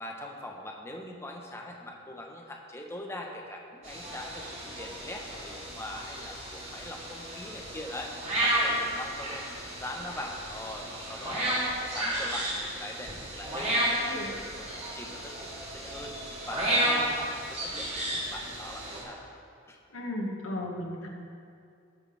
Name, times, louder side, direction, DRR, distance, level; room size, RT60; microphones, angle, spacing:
voice 1, 0.0-16.1 16.5-19.3 19.7-19.8, left 1 dB, 15° left, 0 dB, 1.1 m, -42 dB
sound 1, 3.8-19.0, right 1 dB, 30° right, 3.2 m, -32 dB
voice 2, 19.9-21.1, left 1 dB, 85° left, -1 dB, 1.9 m, -35 dB
18.5 x 7.7 x 3.5 m, 2.4 s
head